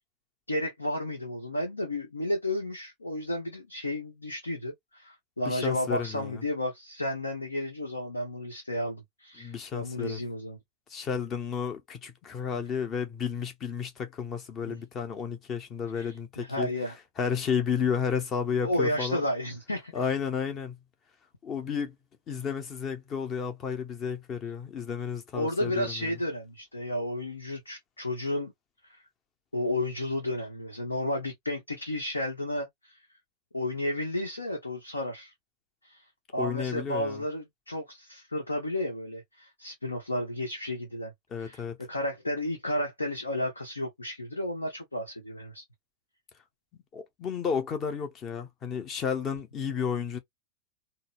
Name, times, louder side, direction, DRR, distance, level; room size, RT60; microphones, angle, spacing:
voice 1, 0.5-10.6 14.7-14.8 15.9-16.9 18.6-20.1 25.3-28.5 28.9-29.0 29.5-33.0 33.5-35.3 35.8-36.0 36.3-41.1 41.4-45.6, left 1 dB, 80° left, 0.9 m, -32 dB
voice 2, 5.5-6.3 9.4-10.2 10.9-16.7 17.2-19.2 19.9-20.8 21.4-21.9 22.3-26.1 36.4-37.2 41.3-41.8 46.9-50.2, left 6 dB, 30° left, 0.8 m, -32 dB
3.8 x 2.0 x 2.4 m
figure-of-eight pair, 90°, 0 cm